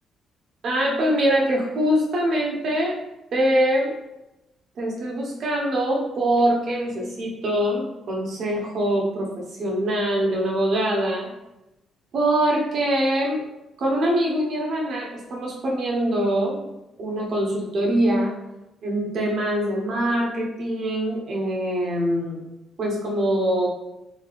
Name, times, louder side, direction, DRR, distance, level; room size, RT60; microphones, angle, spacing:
voice 1, 0.6-3.0 3.3-4.0 4.8-11.3 12.1-13.5 13.8-16.7 17.0-18.4 18.8-22.4 22.8-23.7, right 1 dB, 60° right, -2 dB, 1.1 m, -23 dB
3.7 x 3.1 x 2.4 m, 0.93 s
cardioid pair, 90°, 0 cm